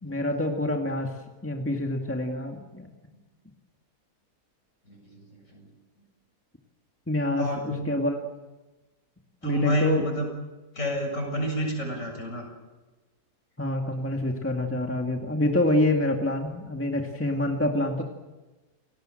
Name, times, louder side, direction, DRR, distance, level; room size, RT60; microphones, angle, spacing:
voice 1, 0.0-1.2 1.4-2.9 7.1-8.2 9.4-10.0 13.6-18.0, left 1 dB, 10° left, 2 dB, 2.0 m, -27 dB
voice 2, 4.9-5.7 7.4-7.9 9.4-10.3 10.7-12.5 17.4-17.5, equal, 50° left, 2 dB, 7.6 m, -29 dB
29.0 x 19.5 x 7.8 m, 1.2 s
omnidirectional pair, 1.7 m